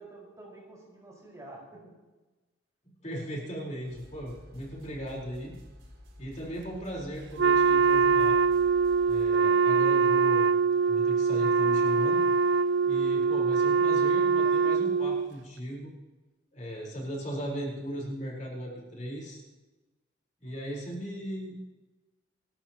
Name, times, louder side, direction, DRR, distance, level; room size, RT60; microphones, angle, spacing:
voice 1, 0.0-2.0, right 2 dB, 15° right, -4 dB, 5.1 m, -49 dB
voice 2, 3.0-5.5 6.2-8.4 9.0-10.5 10.8-12.2 12.8-15.9 16.5-19.4 20.4-21.7, equal, 35° left, -3 dB, 4.4 m, -37 dB
sound 1, 3.8-9.3, left 1 dB, 90° right, 4.5 m, -51 dB
Wind instrument woodwind instrument, 7.4-15.3, right 5 dB, 65° right, 0.4 m, -23 dB
30.0 x 13.0 x 3.0 m, 1.2 s
head